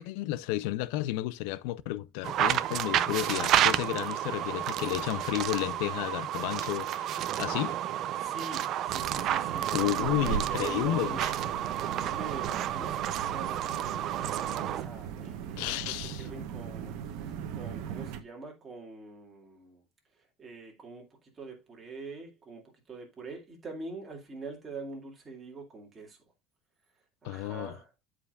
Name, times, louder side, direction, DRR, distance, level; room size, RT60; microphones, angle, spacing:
voice 1, 0.0-7.8 9.7-11.3 15.6-16.3 27.2-27.7, left 16 dB, 65° left, 0.5 m, -32 dB
sound 1, 2.2-14.9, right 11 dB, 35° right, 0.5 m, -30 dB
voice 2, 8.1-11.3 11.6-15.8 16.2-19.8 20.1-26.2 27.2-27.9, right 3 dB, 15° right, 2.2 m, -44 dB
sound 2, 8.9-18.2, right 8 dB, 55° right, 1.0 m, -39 dB
13.5 x 5.0 x 2.4 m
cardioid pair, 170°, 0 cm